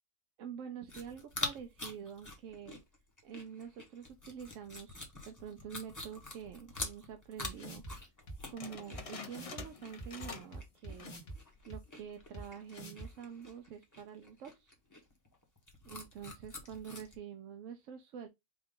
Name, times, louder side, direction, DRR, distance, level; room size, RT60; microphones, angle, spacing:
voice 1, 0.4-2.8 3.2-7.8 8.5-11.1 11.7-14.7 15.8-18.3, right 8 dB, 80° right, 1.0 m, -47 dB
sound 1, 0.9-17.2, left 2 dB, 15° left, 1.0 m, -46 dB
sound 2, 6.8-6.9 7.4-7.9 8.3-8.4 8.9-9.0 9.3-9.6 10.0-11.4 11.7-11.8 12.3-12.4 12.7-13.1, right 1 dB, 65° left, 1.6 m, -45 dB
sound 3, 8.6-10.6 10.9-11.3 11.7-11.8 12.5-12.9, left 5 dB, 40° left, 0.5 m, -47 dB
5.1 x 2.4 x 3.7 m
omnidirectional pair, 1.3 m